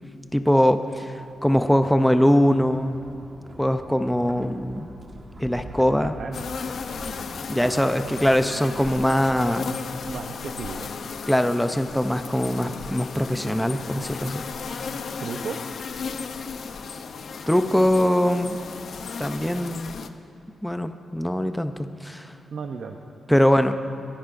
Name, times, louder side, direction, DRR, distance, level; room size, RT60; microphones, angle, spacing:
voice 1, 0.3-1.1 1.4-3.2 3.6-4.9 5.4-6.1 7.5-9.8 11.3-14.4 17.5-18.6 19.2-19.9 20.6-22.3 23.3-23.8, equal, 5° left, 8 dB, 0.5 m, -22 dB
sound 1, 2.5-9.6, right 1 dB, 35° right, 1.5 m, -43 dB
voice 2, 6.0-6.4 10.0-10.9 15.2-15.6 22.5-23.0, right 5 dB, 65° right, 4 dB, 0.7 m, -34 dB
sound 2, 6.3-20.1, left 5 dB, 65° left, 0.6 m, -35 dB
28.0 x 10.5 x 2.6 m, 2.7 s
cardioid pair, 110°, 0 cm